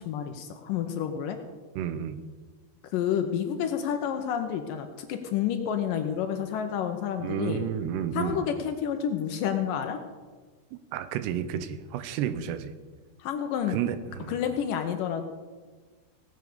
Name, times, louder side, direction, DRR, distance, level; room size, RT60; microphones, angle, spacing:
voice 1, 0.0-1.4 2.9-7.6 8.1-10.0 13.2-13.8 14.3-15.3, left 8 dB, 80° left, 6 dB, 2.0 m, -29 dB
voice 2, 1.8-2.2 7.2-8.4 10.9-12.7 13.7-14.4, right 9 dB, 85° right, 12 dB, 2.9 m, -31 dB
18.0 x 8.1 x 6.8 m, 1.4 s
omnidirectional pair, 4.9 m